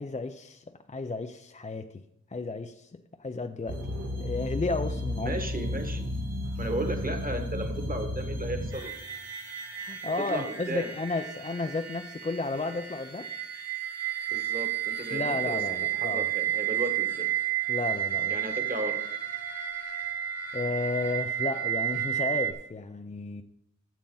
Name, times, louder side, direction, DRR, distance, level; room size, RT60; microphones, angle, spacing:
voice 1, 0.0-2.0 2.3-5.4 9.8-13.3 15.1-16.3 17.7-18.4 20.5-23.4, left 3 dB, 25° left, 7 dB, 0.5 m, -33 dB
sound 1, 3.7-22.5, right 6 dB, 55° right, 1.4 m, -32 dB
voice 2, 5.2-6.1 6.6-8.9 10.3-10.9 14.3-15.6 16.0-17.3 18.3-19.0, right 1 dB, 30° right, 5 dB, 1.5 m, -34 dB
12.5 x 7.1 x 3.9 m, 0.76 s
wide cardioid pair, 75°, 30 cm